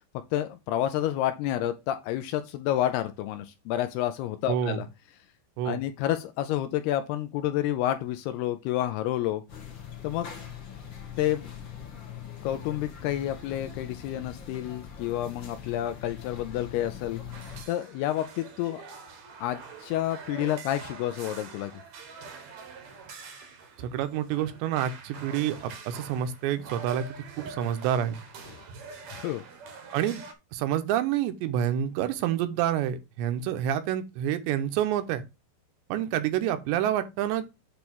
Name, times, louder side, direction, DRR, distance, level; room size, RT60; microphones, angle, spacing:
voice 1, 0.3-4.9 5.7-9.4 10.0-10.3 11.2-11.5 12.4-17.2 17.7-18.8 19.4-21.7 28.5-28.6 29.1-29.4, left 12 dB, 80° left, 2.4 m, -29 dB
voice 2, 4.5-4.8 5.6-5.8 23.8-28.2 29.9-30.2 30.5-35.2 35.9-37.5, right 10 dB, 85° right, 3.1 m, -28 dB
sound 1, 9.5-17.6, left 8 dB, 55° left, 1.3 m, -42 dB
sound 2, 17.3-30.3, right 4 dB, 70° right, 1.7 m, -45 dB
8.4 x 3.3 x 6.0 m
omnidirectional pair, 5.0 m